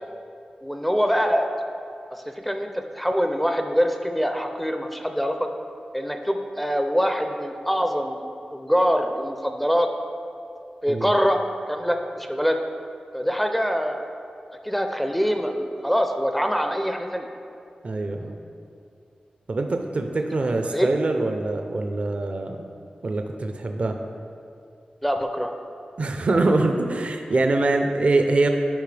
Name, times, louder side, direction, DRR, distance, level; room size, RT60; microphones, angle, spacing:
voice 1, 0.6-1.5 2.1-5.3 5.9-8.2 8.5-9.9 10.8-11.4 11.7-12.6 13.1-14.1 14.6-17.3 20.6-20.9 25.0-25.5, equal, 5° left, 5 dB, 0.4 m, -24 dB
voice 2, 17.8-18.4 19.5-22.7 23.0-24.0 26.0-28.5, right 2 dB, 50° right, 4 dB, 0.5 m, -24 dB
10.5 x 5.4 x 3.3 m, 2.5 s
wide cardioid pair, 115°, 3 cm